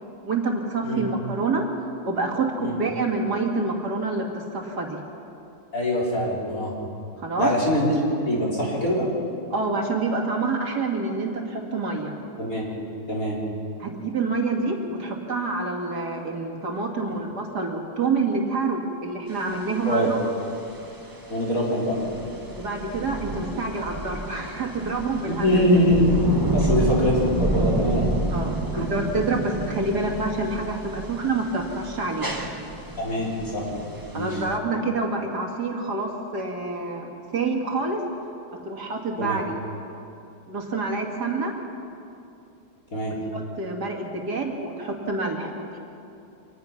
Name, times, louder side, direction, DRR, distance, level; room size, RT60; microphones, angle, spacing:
voice 1, 0.2-1.7 2.1-5.0 7.2-7.6 9.5-12.1 13.8-20.3 22.5-25.5 26.6-26.7 28.3-32.3 34.1-38.0 38.6-39.5 40.5-41.6 43.1-45.8, right 3 dB, 50° right, 1 dB, 2.8 m, -27 dB
voice 2, 5.7-6.7 7.4-7.9 8.2-9.1 12.4-12.6 13.1-13.4 19.9-20.1 21.3-21.9 25.3-26.1 26.5-28.0 28.8-28.9 33.0-33.6 34.1-34.3 39.2-39.4 42.9-43.1, equal, 40° left, -5 dB, 4.9 m, -23 dB
sound 1, 19.3-34.6, right 2 dB, 10° right, 1.2 m, -29 dB
25.5 x 19.0 x 6.0 m, 2.7 s
omnidirectional pair, 2.4 m